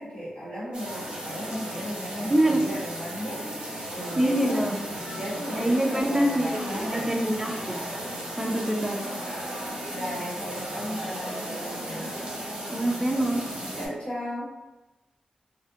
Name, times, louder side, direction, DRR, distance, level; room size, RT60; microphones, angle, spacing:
voice 1, 0.0-3.6 3.9-4.6 5.1-7.2 8.4-9.2 9.9-12.1 13.7-14.5, equal, 50° left, -12 dB, 1.0 m, -35 dB
sound 1, 0.7-13.9, right 1 dB, 40° right, 0.7 m, -35 dB
voice 2, 2.3-2.6 4.2-4.8 5.6-7.8 8.4-9.1 12.7-13.4, right 1 dB, 15° right, 1 dB, 0.3 m, -25 dB
2.4 x 2.0 x 2.6 m, 1.0 s
wide cardioid pair, 160°, 2 cm